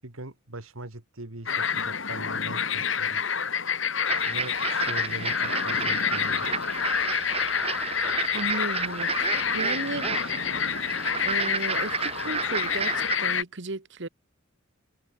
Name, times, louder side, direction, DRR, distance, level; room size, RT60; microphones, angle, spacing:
voice 1, 0.0-3.2 4.3-6.5, right 2 dB, 80° right, 2.6 m, -41 dB
sound 1, 1.5-13.4, left 7 dB, 65° left, 3.1 m, -28 dB
sound 2, 4.1-13.2, right 5 dB, 30° right, 2.1 m, -32 dB
voice 2, 8.3-9.1 9.5-10.1 10.8-10.9 11.2-14.1, right 2 dB, 60° right, 1.4 m, -34 dB
head